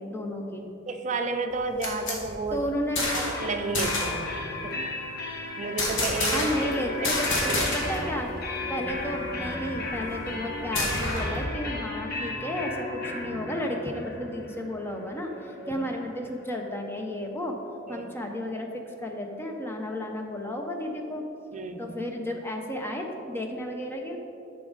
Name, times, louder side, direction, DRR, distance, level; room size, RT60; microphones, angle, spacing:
voice 1, 0.0-0.7 2.5-3.0 6.3-8.3 8.7-17.6 17.9-21.2 21.8-24.2, equal, 10° left, 2 dB, 0.6 m, -32 dB
voice 2, 0.9-2.6 3.1-4.8 5.6-6.5 7.0-7.1 7.5-7.7 8.6-8.8 15.6-15.8 17.9-18.1 21.5-22.0, right 3 dB, 35° right, 6 dB, 0.5 m, -32 dB
sound 1, 1.5-3.5 3.7-4.2 5.8-6.7 7.0-8.1 8.4-8.5 8.8-11.4, left 2 dB, 65° left, 1.5 m, -29 dB
sound 2, 3.3-16.9, left 2 dB, 50° left, 1.0 m, -35 dB
9.4 x 6.1 x 3.9 m, 2.9 s
head